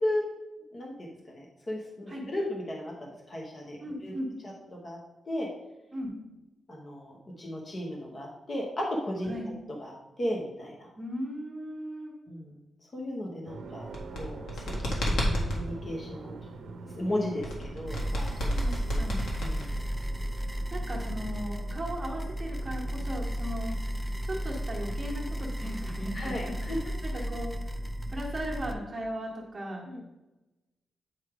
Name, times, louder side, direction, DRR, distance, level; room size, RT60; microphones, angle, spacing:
voice 1, 0.7-4.1 4.4-4.5 4.8-5.0 5.3-5.5 6.7-9.3 9.8-10.9 12.3-12.5 12.9-13.9 14.1-16.3 16.6-19.1 19.4-19.8 26.1-26.8 29.9-30.0, left 1 dB, 25° left, -1 dB, 0.9 m, -35 dB
voice 2, 3.8-4.3 5.9-6.1 9.2-9.5 11.0-12.1 18.6-19.3 20.7-23.7 24.2-27.8 28.1-29.9, equal, 20° right, -2 dB, 1.4 m, -37 dB
sound 1, 13.4-28.8, right 3 dB, 75° right, 0.6 m, -46 dB
sound 2, 13.8-15.6 17.4-20.0, equal, 75° left, 1.7 m, -30 dB
sound 3, 17.9-28.7, equal, ahead, 0.5 m, -34 dB
8.8 x 3.2 x 4.8 m, 1.0 s
wide cardioid pair, 180°, 0 cm